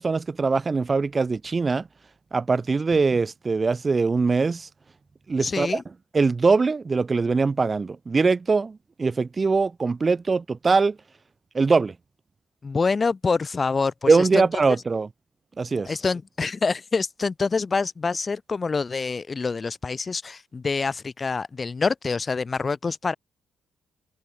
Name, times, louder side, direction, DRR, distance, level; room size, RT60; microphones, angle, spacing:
voice 1, 0.0-1.9 2.3-4.7 5.3-5.8 6.1-11.0 11.5-11.9 14.1-15.1 15.6-15.9, right 4 dB, 30° right, 0.5 m, -22 dB
voice 2, 5.4-5.8 12.6-14.5 15.9-23.1, left 4 dB, 30° left, 1.0 m, -26 dB
cardioid pair, 90°, 0 cm